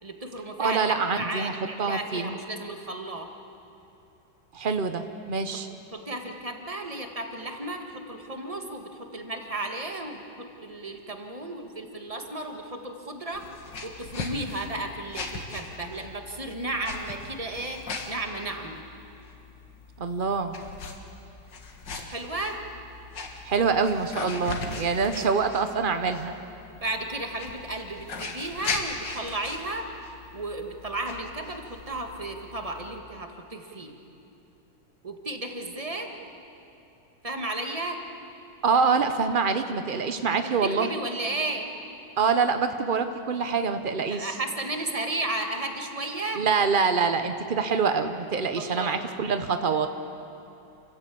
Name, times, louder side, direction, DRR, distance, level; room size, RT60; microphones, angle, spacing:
voice 1, 0.0-0.8 1.1-3.3 5.9-13.4 13.8-18.8 22.0-22.6 26.8-29.9 30.3-33.9 35.0-36.1 37.2-38.0 40.3-41.7 44.1-46.4 48.6-49.0, right 2 dB, 20° right, 3 dB, 1.6 m, -34 dB
voice 2, 0.6-1.5 1.8-2.4 4.5-5.7 20.0-20.5 23.4-26.3 38.6-40.9 42.2-44.3 46.4-49.9, right 5 dB, 85° right, 8 dB, 0.4 m, -25 dB
sound 1, 13.3-33.0, left 4 dB, 60° left, 2.4 m, -39 dB
27.5 x 15.0 x 8.6 m, 2.8 s
omnidirectional pair, 2.2 m